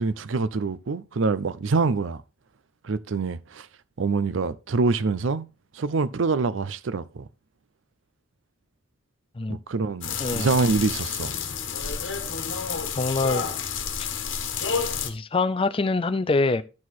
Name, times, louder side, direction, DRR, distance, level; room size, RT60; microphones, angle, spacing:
voice 1, 0.0-2.2 2.8-3.7 4.0-5.5 5.7-7.3 9.5-11.4, right 4 dB, 75° right, 0.5 m, -25 dB
sound 1, 10.0-15.1, left 6 dB, 75° left, 1.3 m, -30 dB
voice 2, 10.2-10.5 12.9-13.4 15.0-16.6, left 3 dB, 30° left, 0.5 m, -24 dB
12.0 x 4.7 x 4.1 m
head